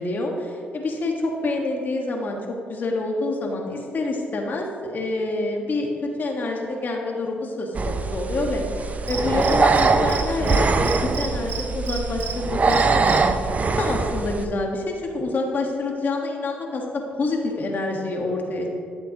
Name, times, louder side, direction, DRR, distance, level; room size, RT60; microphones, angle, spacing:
voice 1, 0.0-2.4 2.7-5.9 6.2-13.3 13.8-18.7, left 2 dB, 50° left, 1 dB, 1.5 m, -27 dB
sound 1, 7.7-14.5, right 4 dB, 40° right, 0.6 m, -22 dB
Cricket, 9.1-10.2 10.5-10.6 10.8-12.3 12.7-13.2, right 8 dB, 75° right, 1.0 m, -31 dB
12.0 x 7.4 x 3.0 m, 2.5 s
supercardioid pair, 65°, 4 cm